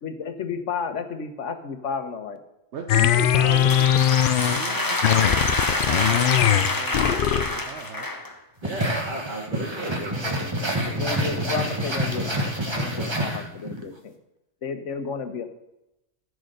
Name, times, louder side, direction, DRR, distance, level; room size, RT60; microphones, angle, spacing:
voice 1, 0.0-2.4 2.9-3.2 10.9-14.2 14.6-15.5, left 5 dB, 90° left, 8 dB, 1.4 m, -32 dB
voice 2, 2.7-8.1, right 5 dB, 70° right, 4 dB, 1.1 m, -38 dB
sound 1, 2.9-4.7 5.0-7.6, left 10 dB, 60° left, 0.6 m, -20 dB
sound 2, 3.2-8.3, left 2 dB, 20° left, 0.9 m, -27 dB
sound 3, 8.6-13.8, equal, 25° right, 1.4 m, -27 dB
voice 3, 8.6-10.5, right 1 dB, 45° right, -4 dB, 2.1 m, -34 dB
14.0 x 4.8 x 6.6 m, 0.90 s
omnidirectional pair, 1.2 m